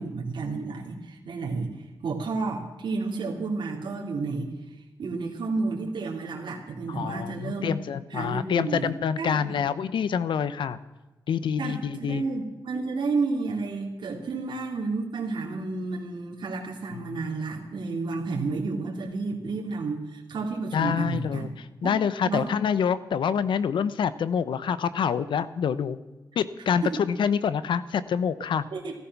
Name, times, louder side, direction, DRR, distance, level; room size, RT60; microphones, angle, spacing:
voice 1, 0.0-1.8 2.0-4.5 5.0-7.7 8.1-8.9 9.2-9.6 11.6-21.5 21.8-21.9 22.3-22.5 26.8-26.9 28.7-28.9, right 3 dB, 70° right, -1 dB, 2.7 m, -31 dB
voice 2, 6.9-10.8 11.3-12.2 16.9-17.2 20.7-26.0 26.4-28.6, left 7 dB, 85° left, 15 dB, 0.8 m, -26 dB
16.0 x 14.0 x 6.0 m, 1.1 s
cardioid pair, 95°, 8 cm